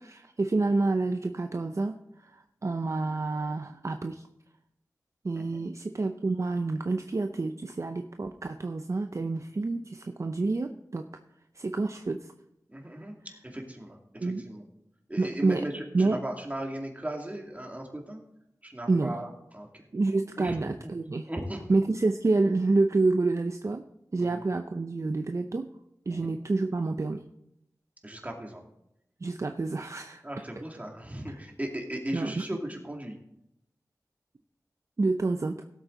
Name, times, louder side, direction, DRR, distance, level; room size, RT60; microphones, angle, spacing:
voice 1, 0.0-1.9 2.2-2.3 2.6-4.2 5.2-11.1 11.6-12.3 14.2-14.4 15.2-15.6 15.9-16.2 18.9-19.2 19.9-21.3 21.7-23.8 24.1-25.7 26.1-27.2 29.2-30.2 32.1-32.4 35.0-35.6, right 3 dB, 50° right, 7 dB, 0.6 m, -28 dB
voice 2, 12.7-13.1 13.4-14.6 15.1-18.2 18.6-19.7 20.4-20.9 21.3-21.6 24.2-24.4 26.1-26.3 28.0-28.6 30.2-33.2, right 1 dB, 20° right, 1 dB, 2.5 m, -37 dB
17.0 x 8.1 x 3.9 m, 0.81 s
wide cardioid pair, 65°, 7 cm